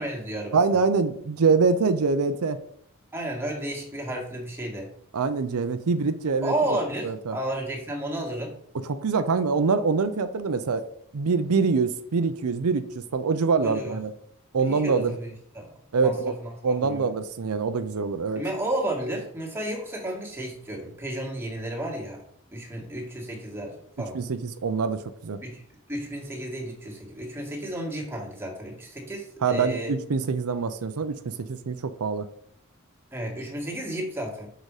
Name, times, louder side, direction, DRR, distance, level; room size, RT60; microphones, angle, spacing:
voice 1, 0.0-0.6 3.1-4.9 6.4-8.5 13.6-14.0 14.5-15.0 15.5-15.7 16.0-16.1 16.8-17.1 18.4-22.2 22.5-24.2 25.4-25.6 25.9-29.9 33.1-34.5, right 1 dB, 10° right, -2 dB, 1.9 m, -32 dB
voice 2, 0.5-2.6 5.1-6.5 7.0-7.4 8.7-10.8 11.1-14.1 14.5-15.2 15.9-16.3 16.6-18.4 24.1-25.4 29.4-32.3, right 4 dB, 85° right, 10 dB, 0.5 m, -25 dB
6.5 x 5.1 x 4.9 m, 0.65 s
head